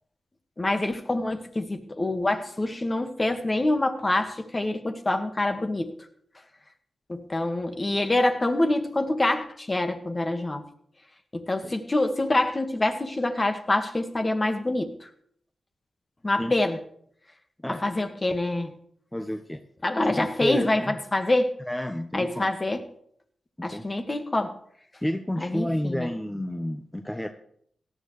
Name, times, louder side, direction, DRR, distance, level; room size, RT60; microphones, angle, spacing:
voice 1, 0.6-6.0 7.1-10.6 11.3-15.1 16.2-16.8 17.7-18.7 19.8-21.5 22.1-22.8 23.6-24.5 25.4-26.1, left 2 dB, 35° left, 6 dB, 1.7 m, -26 dB
voice 2, 19.1-19.6 20.1-21.0 21.7-22.5 23.6-23.8 25.0-27.3, left 1 dB, 15° left, 6 dB, 1.1 m, -30 dB
17.5 x 12.0 x 3.3 m, 0.66 s
supercardioid pair, 40°, 0 cm